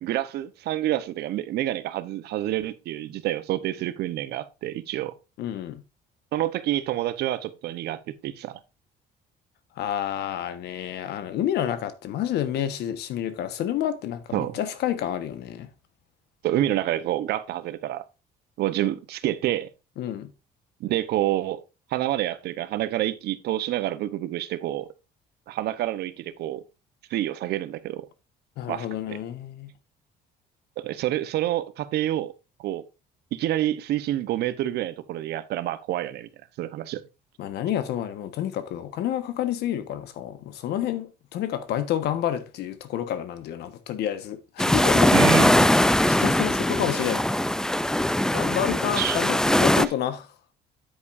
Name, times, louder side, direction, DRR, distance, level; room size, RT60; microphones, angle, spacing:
voice 1, 0.0-5.1 6.3-8.6 14.3-14.6 16.4-18.0 18.6-19.7 20.8-21.6 21.9-24.9 25.5-26.6 27.1-28.1 28.7-29.2 30.8-32.3 32.6-32.8 33.3-36.3 36.6-37.0 45.1-45.6 49.0-49.2 49.8-49.9, right 13 dB, 75° right, 1.0 m, -28 dB
voice 2, 5.4-5.8 9.8-15.7 20.0-20.3 28.6-29.7 37.4-45.4 45.8-47.2 48.3-50.2, left 11 dB, 75° left, 1.4 m, -29 dB
sound 1, 44.6-49.9, left 1 dB, 5° left, 0.4 m, -21 dB
9.5 x 8.4 x 2.6 m
cardioid pair, 110°, 17 cm